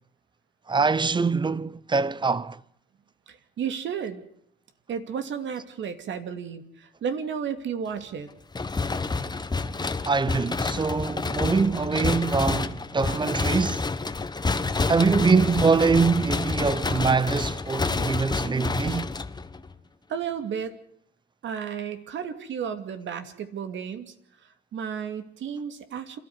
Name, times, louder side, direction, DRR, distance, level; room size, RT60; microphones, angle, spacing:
voice 1, 0.7-2.6 10.1-13.9 14.9-19.2, right 4 dB, 25° right, 0.9 m, -24 dB
voice 2, 3.3-4.2 4.9-8.3 20.1-20.8 21.4-24.1 24.4-26.2, right 7 dB, 70° right, 2.7 m, -33 dB
sound 1, 8.5-19.7, left 3 dB, 20° left, 1.4 m, -28 dB
27.0 x 13.5 x 9.7 m
cardioid pair, 90°, 20 cm